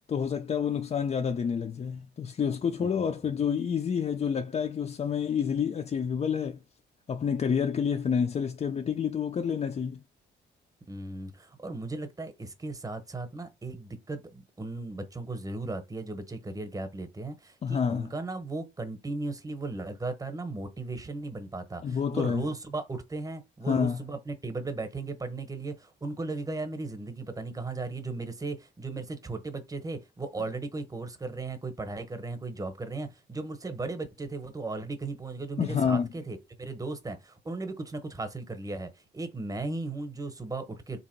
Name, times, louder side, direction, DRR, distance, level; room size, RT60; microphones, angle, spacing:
voice 1, 0.0-6.6 7.1-10.0 17.6-18.1 21.8-22.4 23.7-24.0 35.6-36.1, left 7 dB, 35° left, 0.4 m, -28 dB
voice 2, 10.9-41.0, right 3 dB, 15° right, 0.9 m, -36 dB
3.5 x 2.8 x 4.4 m
cardioid pair, 90°, 20 cm